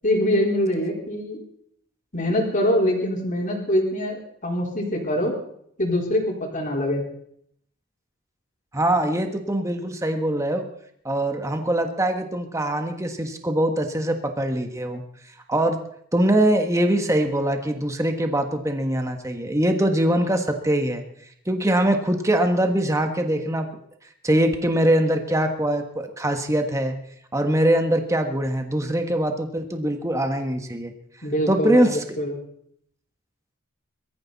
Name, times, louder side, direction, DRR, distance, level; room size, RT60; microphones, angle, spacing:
voice 1, 0.0-1.4 2.1-5.3 5.8-7.0 31.2-32.4, left 1 dB, 40° left, 0 dB, 4.3 m, -24 dB
voice 2, 8.7-10.6 11.0-15.0 15.5-15.8 16.1-21.0 21.5-23.7 24.2-26.9 27.3-30.9 31.5-32.0, right 1 dB, 15° right, 5 dB, 1.4 m, -22 dB
22.5 x 14.0 x 4.1 m, 0.68 s
head